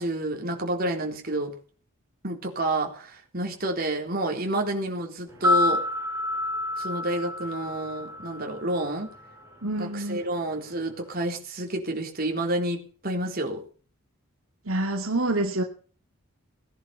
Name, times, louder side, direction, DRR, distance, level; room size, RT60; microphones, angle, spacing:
voice 1, 0.0-1.5 2.2-5.8 6.8-9.1 9.8-13.6, right 1 dB, 45° right, 2 dB, 3.9 m, -29 dB
sound 1, 5.3-9.5 9.7-9.8, left 2 dB, 15° right, 6.3 m, -28 dB
voice 2, 9.6-10.2 14.7-15.6, right 2 dB, 75° right, 3 dB, 2.3 m, -27 dB
18.5 x 11.0 x 5.6 m, 0.42 s
head